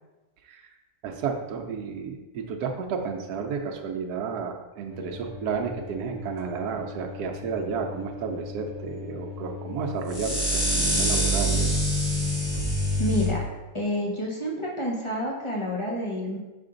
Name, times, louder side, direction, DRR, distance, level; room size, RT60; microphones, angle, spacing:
voice 1, 0.4-0.7 1.0-11.8, right 6 dB, 75° right, 3 dB, 1.1 m, -32 dB
sound 1, 4.9-13.3, equal, 45° left, 1.8 m, -28 dB
voice 2, 13.0-13.4 13.7-16.4, equal, 25° left, -3 dB, 0.7 m, -28 dB
5.9 x 4.3 x 3.8 m, 1.1 s
omnidirectional pair, 1.7 m